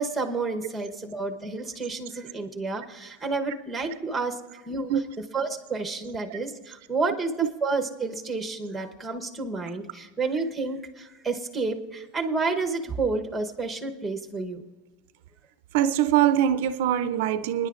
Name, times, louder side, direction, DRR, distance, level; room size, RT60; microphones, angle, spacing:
voice 1, 0.0-4.4 4.6-4.9 5.3-7.3 7.6-14.6, right 3 dB, 5° right, 1.0 m, -30 dB
voice 2, 15.7-17.7, right 10 dB, 65° right, 0.4 m, -23 dB
28.0 x 10.0 x 2.5 m
supercardioid pair, 165°, 0 cm